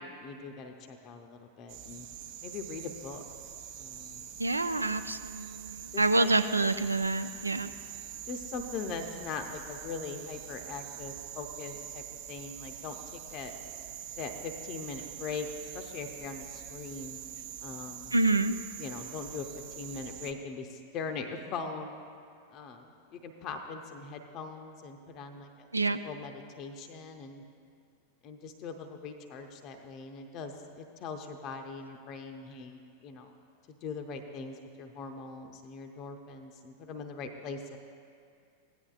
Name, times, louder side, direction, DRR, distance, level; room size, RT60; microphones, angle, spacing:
voice 1, 0.2-2.1 2.4-3.2 3.8-4.3 5.9-6.3 8.2-13.5 14.1-15.5 15.7-17.2 17.6-18.1 18.8-19.5 19.8-22.0 22.5-27.4 28.2-33.3 33.7-37.8, left 5 dB, 35° left, 5 dB, 0.6 m, -41 dB
sound 1, 1.7-20.3, right 9 dB, 50° right, 0.7 m, -44 dB
voice 2, 4.4-7.7 18.1-18.6 25.7-26.0, right 2 dB, 80° right, 11 dB, 0.3 m, -27 dB
15.5 x 9.8 x 2.4 m, 2.3 s
figure-of-eight pair, 90°, 0 cm